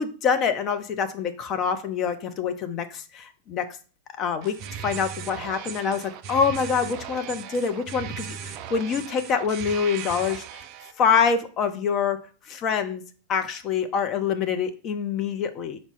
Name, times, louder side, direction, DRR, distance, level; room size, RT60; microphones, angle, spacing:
voice 1, 0.0-3.6 4.2-4.5 4.8-10.6 11.0-12.2 12.5-13.0 13.3-15.8, left 6 dB, 35° left, 8 dB, 0.5 m, -25 dB
pulsing fist, 4.4-10.9, right 8 dB, 40° right, 0.4 m, -37 dB
5.2 x 2.1 x 4.5 m, 0.39 s
figure-of-eight pair, 90°, 0 cm